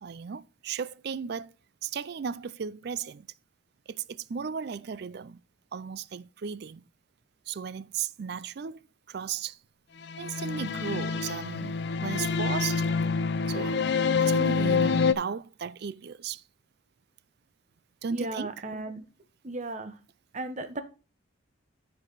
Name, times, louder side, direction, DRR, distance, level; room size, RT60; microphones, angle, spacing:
voice 1, 0.0-1.5 1.8-3.3 3.9-5.4 5.7-6.8 7.5-9.6 10.2-12.9 13.5-13.8 14.2-16.4 18.0-18.5, right 6 dB, 50° right, 0.4 m, -35 dB
sound 1, 10.0-15.1, left 5 dB, 55° left, 0.5 m, -26 dB
voice 2, 18.1-19.0 19.4-20.0 20.3-20.8, right 2 dB, 35° right, 1.0 m, -35 dB
13.0 x 4.7 x 3.9 m
head